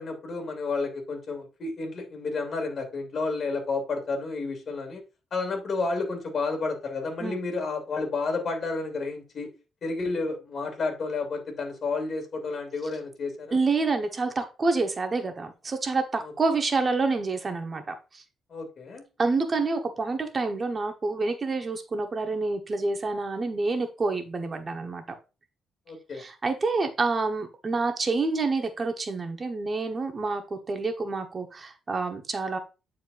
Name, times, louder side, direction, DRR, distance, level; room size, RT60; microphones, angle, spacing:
voice 1, 0.0-5.0 5.3-9.5 9.8-13.6 16.2-16.3 18.5-19.0 25.9-26.2, left 3 dB, 50° left, 4 dB, 2.6 m, -31 dB
voice 2, 13.5-18.2 19.2-25.0 26.1-32.6, right 3 dB, 35° right, 5 dB, 1.2 m, -28 dB
9.3 x 4.4 x 2.5 m, 0.31 s
cardioid pair, 90°, 0 cm